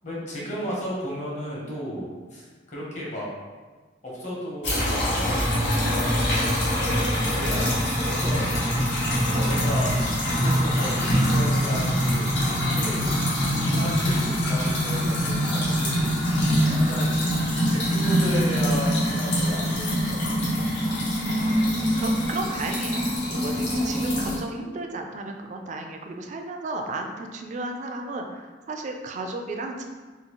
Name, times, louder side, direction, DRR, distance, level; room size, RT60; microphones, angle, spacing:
voice 1, 0.0-2.1 2.3-3.3 4.0-6.6 7.3-7.7 8.0-8.6 9.4-9.9 10.4-13.0 13.7-16.1 16.4-17.2 17.7-20.4 23.5-23.9, equal, 40° left, -5 dB, 0.9 m, -34 dB
sound 1, 4.6-24.4, equal, 75° left, 0.9 m, -24 dB
voice 2, 21.4-21.7 22.0-29.8, right 2 dB, 45° right, 4 dB, 0.3 m, -34 dB
3.8 x 2.3 x 2.9 m, 1.4 s
head